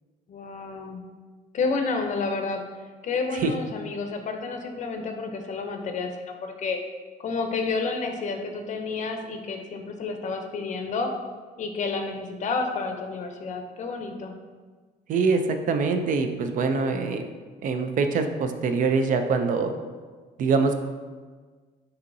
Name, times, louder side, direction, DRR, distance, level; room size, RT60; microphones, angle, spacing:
voice 1, 0.3-1.0 1.5-2.6 3.0-6.8 7.2-11.1 11.6-14.3, left 4 dB, 45° left, 4 dB, 0.6 m, -30 dB
voice 2, 15.1-17.3 17.6-19.7 20.4-20.7, right 4 dB, 50° right, 7 dB, 0.4 m, -24 dB
6.8 x 2.7 x 2.6 m, 1.4 s
cardioid pair, 110°, 17 cm